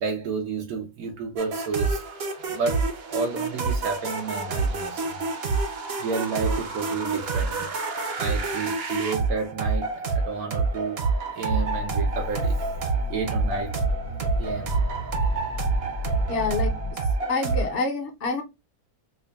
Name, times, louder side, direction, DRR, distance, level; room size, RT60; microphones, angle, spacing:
voice 1, 0.0-5.2 6.0-7.7 8.2-11.1 11.3-12.7 13.1-13.8 14.4-14.7 15.2-15.3, right 4 dB, 85° right, 1.3 m, -31 dB
sound 1, 1.4-17.8, right 4 dB, 55° right, 0.8 m, -27 dB
sound 2, 11.5-16.9, left 2 dB, 80° left, 1.2 m, -34 dB
voice 2, 16.3-16.7 17.3-18.4, left 4 dB, 55° left, 1.1 m, -27 dB
5.0 x 2.2 x 2.2 m
omnidirectional pair, 1.5 m